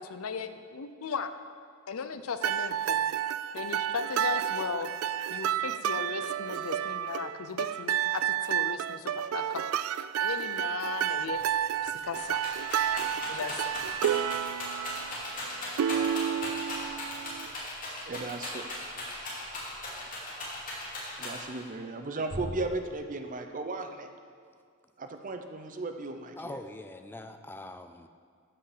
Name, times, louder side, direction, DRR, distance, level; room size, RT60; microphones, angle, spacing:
voice 1, 0.0-1.3 1.9-3.0 3.5-4.9 5.3-9.7 10.2-11.4 11.8-12.4 13.3-13.7, left 5 dB, 70° left, 10 dB, 0.6 m, -36 dB
sound 1, 2.4-17.5, right 10 dB, 70° right, 0.3 m, -31 dB
Rattle, 11.4-11.5 11.7-21.7 22.3-22.9, left 2 dB, 40° left, 2.8 m, -38 dB
voice 2, 18.1-19.5 21.2-24.1 25.0-26.6, right 2 dB, 40° right, 6 dB, 0.7 m, -36 dB
voice 3, 26.4-28.1, left 2 dB, 10° left, 7 dB, 0.4 m, -43 dB
13.5 x 5.7 x 5.0 m, 2.1 s
head